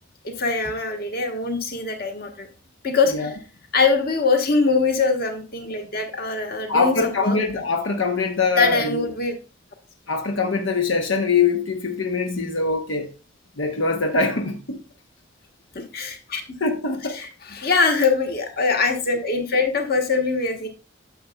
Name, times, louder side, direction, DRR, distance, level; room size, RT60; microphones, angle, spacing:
voice 1, 0.2-2.5 2.8-3.3 3.7-7.4 8.6-9.3 15.7-16.4 17.1-20.7, left 4 dB, 50° left, 1.3 m, -23 dB
voice 2, 6.7-9.1 10.1-13.1 13.6-14.8 16.6-17.2, left 4 dB, 85° left, 0.9 m, -23 dB
9.2 x 7.0 x 2.3 m
head